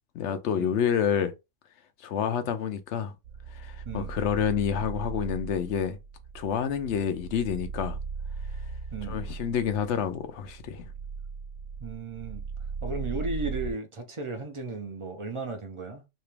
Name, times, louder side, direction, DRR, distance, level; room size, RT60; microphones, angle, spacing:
voice 1, 0.1-1.3 2.0-3.1 3.5-6.0 6.3-8.0 9.1-10.9, left 8 dB, 65° left, 0.9 m, -28 dB
sound 1, 3.2-13.7, right 5 dB, 85° right, 1.0 m, -38 dB
voice 2, 8.9-9.2 11.8-12.4 12.8-16.1, right 3 dB, 45° right, 0.4 m, -35 dB
3.0 x 2.9 x 3.3 m
omnidirectional pair, 1.3 m